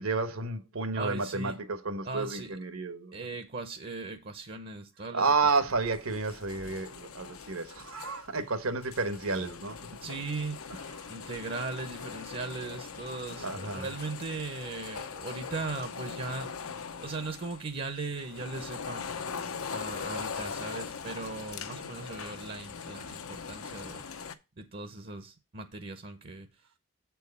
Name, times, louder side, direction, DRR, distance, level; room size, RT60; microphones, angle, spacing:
voice 1, 0.0-3.1 5.1-9.8 13.4-13.9, right 4 dB, 75° right, 1.2 m, -31 dB
voice 2, 0.9-1.6 2.0-2.6 3.1-5.5 10.0-10.8 11.0-16.5 17.0-19.1 19.7-24.0 24.6-26.6, right 3 dB, 45° right, 0.7 m, -38 dB
sound 1, 5.6-24.3, left 6 dB, 80° left, 0.8 m, -41 dB
7.6 x 4.6 x 5.3 m
head